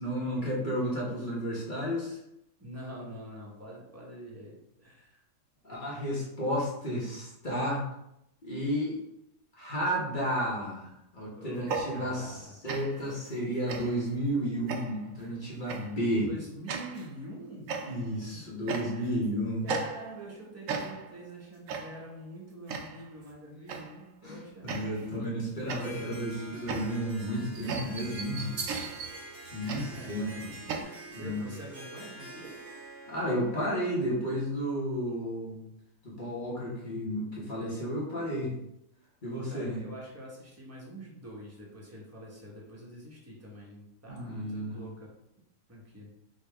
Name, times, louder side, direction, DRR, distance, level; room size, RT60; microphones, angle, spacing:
voice 1, 0.0-2.2 5.6-7.9 8.4-9.0 9.5-16.3 17.8-19.7 24.2-28.6 29.5-30.5 31.1-31.5 33.1-35.6 36.0-38.5 39.2-39.8 44.1-44.8, equal, 30° left, -5 dB, 1.1 m, -32 dB
voice 2, 2.6-5.2 11.4-12.5 16.2-17.7 18.3-18.4 18.9-19.2 19.6-24.7 29.7-30.4 30.8-32.6 39.3-45.1 45.7-46.1, right 1 dB, 10° right, -4 dB, 0.9 m, -46 dB
sound 1, 11.6-12.4 12.7-13.1 13.7-14.1 14.7-15.1 15.7-16.0 16.7-17.1 17.7-18.2 18.7-19.2 19.7-20.3 20.7-21.2 21.7-22.1 22.7-23.1 23.7-24.0 24.7-25.2 25.7-30.8, right 4 dB, 70° right, 0.8 m, -37 dB
Harp, 25.7-34.5, right 2 dB, 35° right, 1.1 m, -46 dB
5.3 x 2.9 x 3.4 m, 0.82 s
omnidirectional pair, 1.9 m